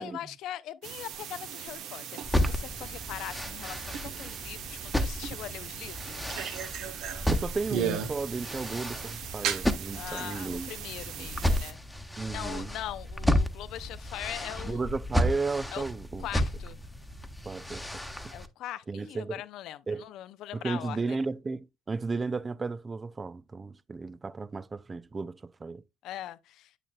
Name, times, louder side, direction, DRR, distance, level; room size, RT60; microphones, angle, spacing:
voice 1, 0.0-6.5 9.9-11.8 12.3-14.8 15.7-15.8 16.2-16.8 18.3-21.2 26.0-26.7, left 13 dB, 65° left, 0.5 m, -41 dB
sound 1, 0.8-11.7, right 8 dB, 65° right, 1.0 m, -37 dB
sound 2, 2.2-18.5, left 1 dB, 5° left, 1.1 m, -32 dB
voice 2, 7.3-10.7 11.2-11.3 12.2-12.7 14.6-16.3 17.5-17.8 18.9-19.4 19.9-20.0 20.5-25.8, right 4 dB, 30° right, 0.4 m, -34 dB
8.5 x 6.7 x 2.3 m
hypercardioid pair, 60°, 0 cm